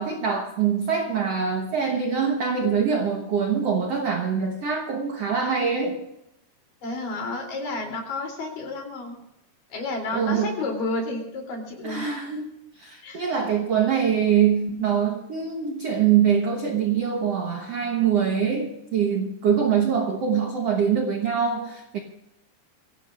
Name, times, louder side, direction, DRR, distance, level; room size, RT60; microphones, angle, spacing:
voice 1, 0.0-6.1 10.1-10.5 11.8-22.0, right 7 dB, 65° right, 3 dB, 1.6 m, -24 dB
voice 2, 6.8-9.2 9.7-12.0 13.0-13.3, left 2 dB, 60° left, 1 dB, 4.9 m, -31 dB
24.0 x 17.5 x 2.5 m, 0.86 s
omnidirectional pair, 4.6 m